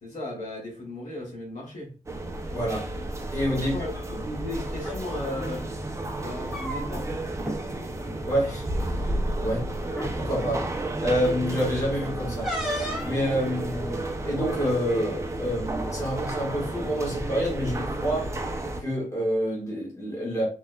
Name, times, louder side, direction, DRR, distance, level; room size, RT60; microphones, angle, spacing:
voice 1, 0.0-1.9 3.6-3.9 4.2-5.7 6.2-7.1, left 1 dB, 60° left, -4 dB, 2.0 m, -35 dB
sound 1, 2.1-18.8, right 1 dB, 20° right, 0.5 m, -32 dB
voice 2, 2.5-2.8 3.3-3.7 8.2-8.7 9.4-9.7 10.1-10.7 11.0-12.8 13.0-18.3 18.8-20.4, equal, 20° left, -5 dB, 1.7 m, -28 dB
sound 2, 4.8-5.0 6.2-7.1 7.4-7.6 8.0-8.2 9.2-9.3 9.9-10.1 12.4-13.2, equal, 5° right, 1.2 m, -32 dB
4.4 x 3.8 x 2.3 m, 0.37 s
wide cardioid pair, 175°, 14 cm